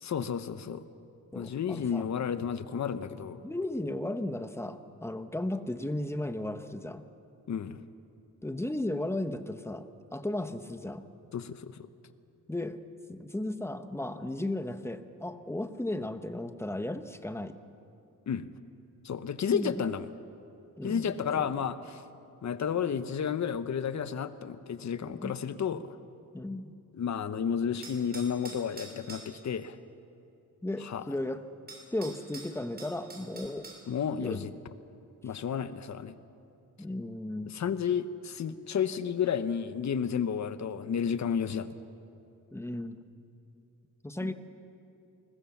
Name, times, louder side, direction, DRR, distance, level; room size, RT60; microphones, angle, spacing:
voice 1, 0.0-0.8 1.3-3.5 7.5-7.8 11.3-11.9 18.3-18.5 19.0-20.1 20.8-22.0 22.4-25.9 26.9-29.8 30.8-31.0 33.9-34.5 35.2-36.1 37.5-41.7 44.2-44.3, left 7 dB, 55° left, 12 dB, 1.1 m, -32 dB
voice 2, 1.3-2.1 3.4-7.0 8.4-11.0 12.5-12.8 13.1-17.6 19.5-19.7 20.8-21.5 25.0-25.3 26.3-26.7 30.6-31.4 31.9-33.7 34.1-34.5 36.8-37.5 42.5-43.0 44.0-44.3, left 1 dB, 10° left, 9 dB, 1.1 m, -35 dB
sound 1, 27.8-29.3 31.2-31.3 31.7-33.8, right 2 dB, 30° right, 6.0 m, -46 dB
29.0 x 21.5 x 7.3 m, 2.6 s
wide cardioid pair, 135°, 34 cm